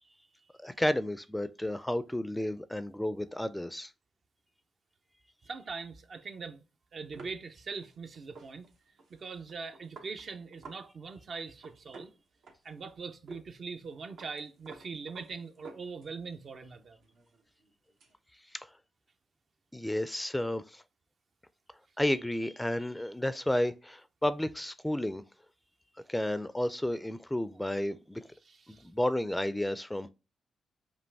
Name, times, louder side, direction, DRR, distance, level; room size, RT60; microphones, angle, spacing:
voice 1, 0.6-3.9 18.5-18.7 19.7-20.8 22.0-25.2 26.1-28.2 28.7-30.1, left 1 dB, 10° left, 0.4 m, -32 dB
voice 2, 5.4-6.6 6.9-8.7 9.1-12.1 12.6-17.0 28.4-28.9, right 4 dB, 60° right, 0.6 m, -42 dB
sound 1, 7.1-10.8 11.1-11.2 11.5-12.9 13.3-13.4 13.7-16.3 16.7-18.1, right 3 dB, 80° right, 1.0 m, -52 dB
5.2 x 2.5 x 3.3 m
supercardioid pair, 55°, 0 cm